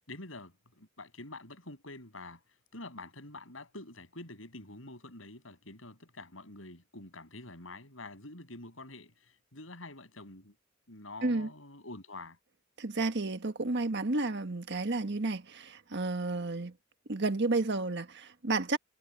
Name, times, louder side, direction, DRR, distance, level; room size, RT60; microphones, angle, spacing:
voice 1, 0.1-2.4 2.7-10.5 10.9-12.4, left 2 dB, 80° left, 7.6 m, -47 dB
voice 2, 12.8-16.7 17.1-18.8, right 2 dB, 60° right, 1.5 m, -31 dB
head